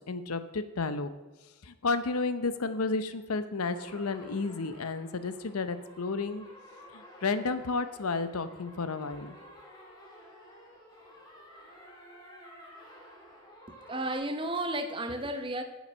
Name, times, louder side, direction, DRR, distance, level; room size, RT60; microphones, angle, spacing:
voice 1, 0.1-1.1 1.6-6.4 6.9-9.4, left 3 dB, 85° left, 11 dB, 0.7 m, -32 dB
sound 1, 3.7-14.2, equal, 20° left, 2.4 m, -52 dB
voice 2, 13.7-15.6, right 1 dB, 25° right, 7 dB, 0.8 m, -33 dB
9.9 x 7.2 x 6.1 m, 1.2 s
head